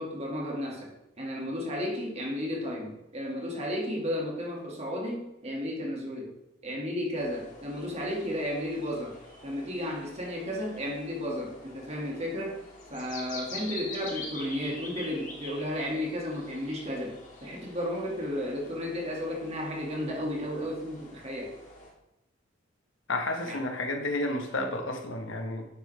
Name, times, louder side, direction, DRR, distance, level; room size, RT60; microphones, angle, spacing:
voice 1, 0.0-6.3 6.6-9.2 9.4-12.6 12.9-21.5 23.5-23.6, equal, 35° right, -1 dB, 1.9 m, -33 dB
sound 1, 7.2-21.9, left 2 dB, 40° left, 1.8 m, -46 dB
voice 2, 23.1-25.7, left 2 dB, 70° left, 4 dB, 1.3 m, -31 dB
9.4 x 7.2 x 3.3 m, 0.86 s
head